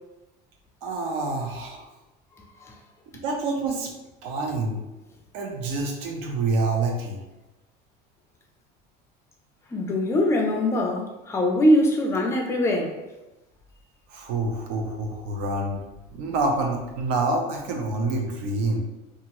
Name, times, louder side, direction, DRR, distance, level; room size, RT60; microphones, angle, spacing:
voice 1, 0.8-1.9 3.2-3.9 4.2-4.8 5.3-7.2 14.1-15.8 16.1-18.8, right 2 dB, 80° right, 2 dB, 0.7 m, -27 dB
voice 2, 9.7-12.9, left 1 dB, 15° left, 0 dB, 0.3 m, -22 dB
2.8 x 2.4 x 2.9 m, 1.0 s
cardioid pair, 160°, 21 cm